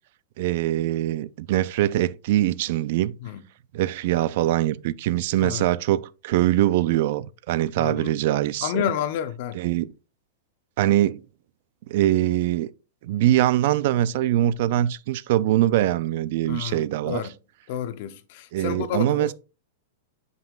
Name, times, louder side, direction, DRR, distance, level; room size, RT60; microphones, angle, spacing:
voice 1, 0.4-3.2 3.7-8.9 9.5-9.9 10.8-11.2 11.9-12.7 13.0-17.3 18.5-19.3, right 13 dB, 50° right, 0.3 m, -23 dB
voice 2, 7.8-8.1 8.6-9.6 16.5-17.3 17.7-19.3, left 9 dB, 45° left, 0.7 m, -30 dB
7.7 x 5.3 x 2.4 m
supercardioid pair, 170°, 0 cm